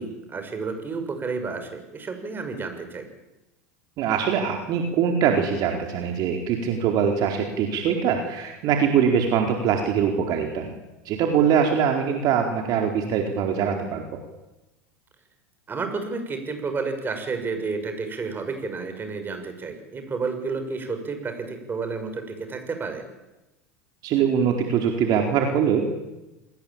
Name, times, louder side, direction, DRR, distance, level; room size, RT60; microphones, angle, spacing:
voice 1, 0.0-3.1 15.7-23.0, right 4 dB, 25° right, 7 dB, 6.8 m, -31 dB
voice 2, 4.0-10.7 11.0-14.2 24.0-25.9, right 7 dB, 50° right, 3 dB, 4.5 m, -23 dB
27.5 x 20.0 x 9.0 m, 1.0 s
hypercardioid pair, 90°, 8 cm